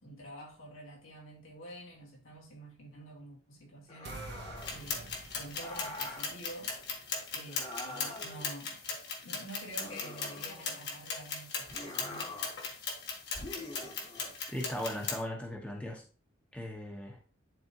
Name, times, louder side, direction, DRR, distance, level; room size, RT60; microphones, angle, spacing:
voice 1, 0.0-4.2 4.7-6.8 7.3-8.8 9.2-12.3, right 1 dB, 75° left, 2.9 m, -48 dB
sound 1, 3.9-4.8 5.5-6.3 7.5-8.5 9.8-10.9 11.7-12.6 13.3-14.4, left 1 dB, 30° left, 1.5 m, -44 dB
sound 2, 4.0-10.2, right 3 dB, 50° right, 0.9 m, -52 dB
sound 3, 4.6-15.2, left 5 dB, 50° left, 1.7 m, -39 dB
voice 2, 14.5-16.0 16.5-17.2, left 1 dB, 5° left, 1.1 m, -38 dB
10.5 x 4.3 x 2.9 m
head